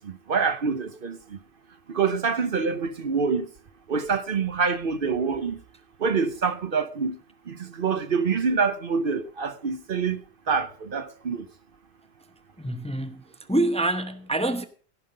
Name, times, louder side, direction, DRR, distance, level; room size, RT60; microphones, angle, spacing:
voice 1, 0.0-1.4 1.9-3.5 3.9-5.6 6.0-7.1 7.5-10.2 10.5-11.4, right 5 dB, 55° right, 1.0 m, -26 dB
voice 2, 12.6-13.2 13.5-14.6, right 1 dB, 5° left, 0.8 m, -26 dB
16.5 x 5.6 x 6.5 m
omnidirectional pair, 1.1 m